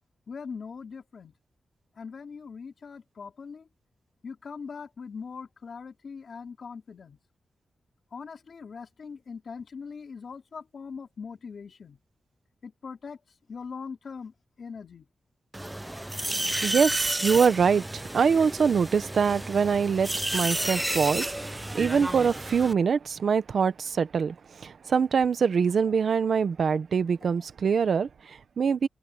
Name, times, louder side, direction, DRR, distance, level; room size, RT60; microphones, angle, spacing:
voice 1, 0.3-1.3 2.0-3.6 4.2-7.2 8.1-12.0 12.6-13.2 13.5-15.1 27.2-27.3, left 5 dB, 55° left, 3.7 m, -41 dB
sound 1, 15.5-22.7, right 1 dB, 10° right, 0.4 m, -32 dB
voice 2, 16.6-28.9, right 6 dB, 60° right, 1.0 m, -24 dB
wide cardioid pair, 160°, 0 cm